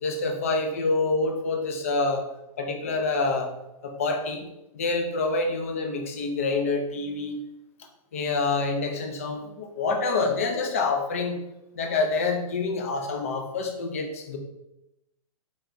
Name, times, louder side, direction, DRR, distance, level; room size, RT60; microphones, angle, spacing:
voice 1, 0.0-2.2 2.6-3.5 3.8-4.5 4.7-7.4 8.1-11.4 11.8-14.4, left 3 dB, 25° left, 4 dB, 0.4 m, -27 dB
4.5 x 4.5 x 2.6 m, 0.89 s
hypercardioid pair, 175°, 19 cm